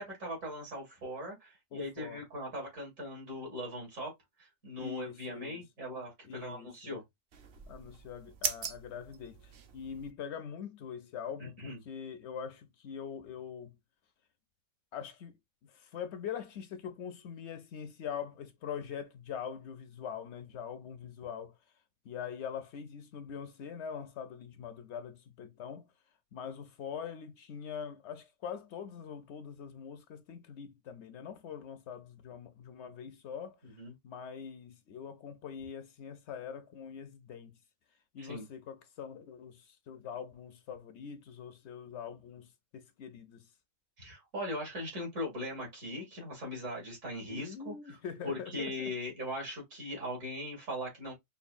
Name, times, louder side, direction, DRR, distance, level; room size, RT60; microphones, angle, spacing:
voice 1, 0.0-4.1 4.4-7.0 11.4-11.8 33.6-33.9 38.2-38.5 44.0-48.0 48.2-51.1, left 1 dB, 75° right, 2.6 m, -40 dB
voice 2, 1.7-2.2 4.8-5.6 6.2-6.9 7.7-13.8 14.9-21.5 22.0-25.9 26.3-33.8 34.0-37.6 38.1-43.5 47.2-48.9, left 7 dB, 65° left, 0.8 m, -43 dB
sound 1, 7.3-10.1, right 6 dB, 55° right, 0.8 m, -40 dB
5.3 x 2.3 x 2.5 m
omnidirectional pair, 1.4 m